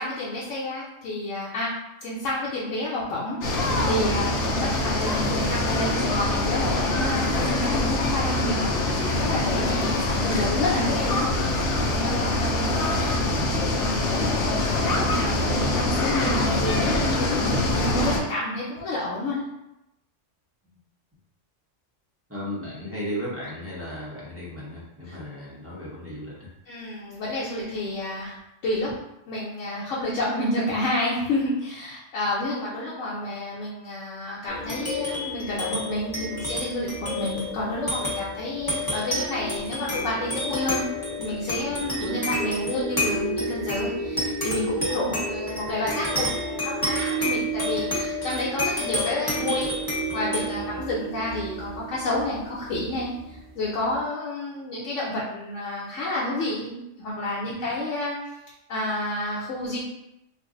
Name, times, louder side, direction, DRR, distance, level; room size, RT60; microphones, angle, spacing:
voice 1, 0.0-1.7 2.0-8.8 9.2-11.7 11.9-13.2 13.7-19.4 25.1-25.2 26.7-28.4 28.6-28.9 29.3-40.8 41.2-49.7 50.1-53.1 53.5-58.4 58.7-59.8, left 1 dB, 80° left, -6 dB, 1.0 m, -30 dB
sound 1, 3.4-18.2, left 2 dB, 60° left, 0.7 m, -24 dB
voice 2, 22.3-26.3 44.6-44.8 50.5-50.8 57.5-57.6, equal, 15° right, -7 dB, 0.8 m, -35 dB
sound 2, 34.5-53.3, equal, 20° left, 0.8 m, -30 dB
2.6 x 2.3 x 3.7 m, 0.88 s
omnidirectional pair, 1.3 m